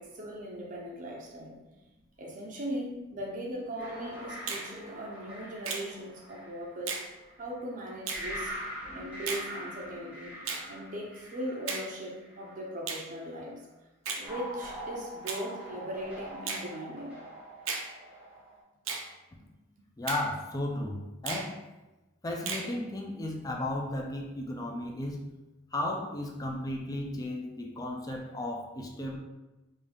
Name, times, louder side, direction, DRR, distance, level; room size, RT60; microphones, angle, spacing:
voice 1, 0.0-1.6 2.2-7.0 7.4-8.6 8.9-10.4 10.7-13.6 14.2-17.2, equal, 40° right, -2 dB, 0.5 m, -39 dB
sound 1, 3.8-7.4 8.1-12.6 14.2-18.6, equal, 5° right, 0.9 m, -43 dB
Finger snapping, 4.5-4.7 5.6-5.9 6.9-7.1 8.1-8.3 9.3-9.5 10.5-10.7 11.7-11.9 12.9-13.1 14.0-14.3 15.3-15.4 16.5-16.7 17.7-17.9 18.9-19.1 20.1-20.3 21.3-21.5 22.5-22.7, right 5 dB, 90° right, 0.6 m, -35 dB
voice 2, 20.0-21.6 22.2-25.2 25.7-29.2, left 1 dB, 20° left, 1 dB, 0.4 m, -34 dB
3.7 x 2.7 x 3.5 m, 1.1 s
head